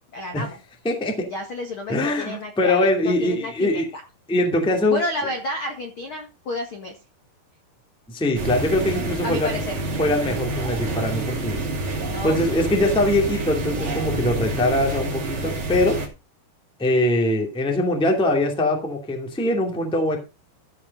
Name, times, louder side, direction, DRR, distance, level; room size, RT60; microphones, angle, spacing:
voice 1, 0.1-0.6 1.3-4.0 4.9-7.0 9.2-9.8 12.0-12.4, left 1 dB, 65° left, 4 dB, 1.3 m, -31 dB
voice 2, 0.8-1.3 1.9-3.8 4.3-5.0 8.1-9.6 10.0-11.6 12.2-16.0 16.8-20.2, left 1 dB, 5° left, 1 dB, 1.0 m, -22 dB
sound 1, 8.4-16.1, right 2 dB, 40° right, 3.0 m, -28 dB
14.5 x 5.1 x 5.4 m, 0.30 s
omnidirectional pair, 5.0 m